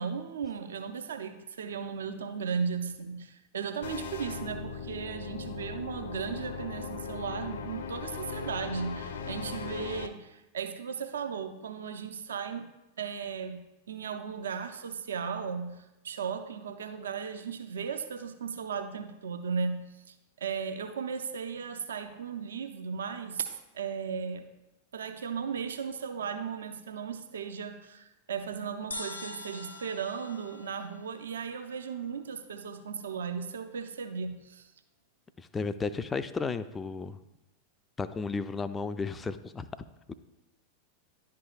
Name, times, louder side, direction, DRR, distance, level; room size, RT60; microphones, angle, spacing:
voice 1, 0.0-12.7 13.0-24.5 24.9-34.7, right 6 dB, 65° right, 8 dB, 0.5 m, -36 dB
sound 1, 3.8-10.1, left 5 dB, 60° left, 0.5 m, -38 dB
sound 2, 28.9-32.4, left 2 dB, 80° left, 0.9 m, -44 dB
voice 2, 35.4-37.2 38.0-39.7 40.1-40.2, left 4 dB, 15° left, 11 dB, 0.3 m, -33 dB
11.0 x 4.6 x 2.4 m, 0.97 s
figure-of-eight pair, 90°, 0 cm